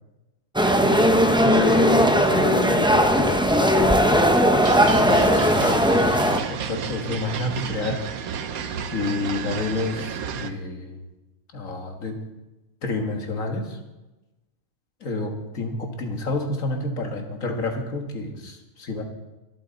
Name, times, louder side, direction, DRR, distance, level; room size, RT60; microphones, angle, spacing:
sound 1, 0.6-6.4, equal, 5° right, 0.5 m, -18 dB
voice 1, 1.2-6.1, left 5 dB, 40° left, 9 dB, 0.7 m, -29 dB
sound 2, 4.6-10.5, right 7 dB, 75° right, 1.3 m, -32 dB
voice 2, 6.5-8.0 8.9-11.0 11.5-12.2 12.8-13.8 15.0-19.0, left 2 dB, 65° left, 3 dB, 2.0 m, -29 dB
24.5 x 8.5 x 4.0 m, 1.1 s
omnidirectional pair, 1.5 m